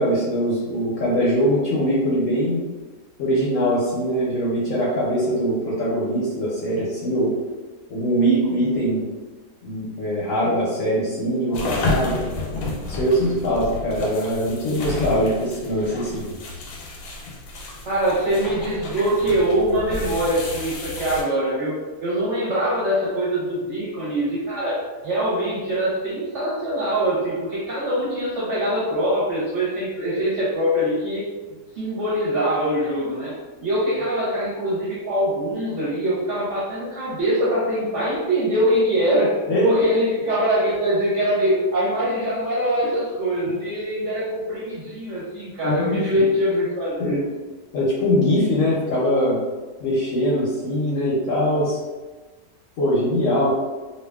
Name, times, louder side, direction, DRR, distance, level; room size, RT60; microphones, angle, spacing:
voice 1, 0.0-2.7 3.2-7.3 7.9-9.1 9.6-12.2 12.9-16.3 39.5-39.7 45.6-46.0 47.0-47.2 47.7-49.4 49.8-51.8 52.8-53.5, equal, 65° left, -7 dB, 0.9 m, -22 dB
sound 1, 11.5-21.2, left 3 dB, 90° left, 1.2 m, -31 dB
voice 2, 17.9-21.7 22.0-31.2 31.8-47.2, equal, 55° right, -8 dB, 0.9 m, -23 dB
2.6 x 2.4 x 2.2 m, 1.2 s
omnidirectional pair, 1.8 m